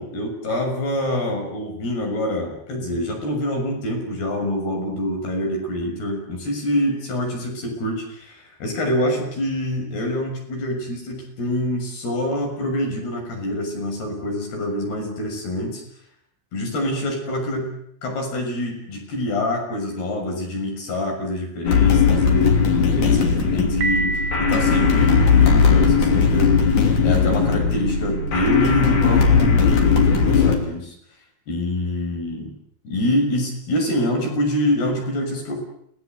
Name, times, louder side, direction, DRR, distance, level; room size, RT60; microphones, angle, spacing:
voice 1, 0.0-15.8 16.5-17.7 18.0-26.5 27.0-30.9 31.5-32.5 32.8-35.6, left 1 dB, 80° left, 1 dB, 8.6 m, -25 dB
sound 1, 21.7-30.6, left 6 dB, 50° left, 4.3 m, -17 dB
Piano, 23.8-25.8, right 2 dB, 60° right, 2.3 m, -28 dB
29.5 x 18.5 x 8.2 m, 0.70 s
omnidirectional pair, 4.5 m